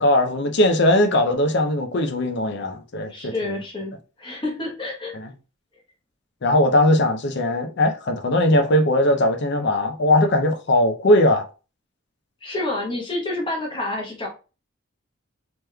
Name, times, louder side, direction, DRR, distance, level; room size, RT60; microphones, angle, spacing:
voice 1, 0.0-3.6 5.2-5.3 6.4-11.5, left 1 dB, 55° left, 0.5 m, -19 dB
voice 2, 3.0-5.1 12.4-14.3, left 2 dB, 25° left, 0.9 m, -29 dB
3.4 x 3.0 x 2.2 m
head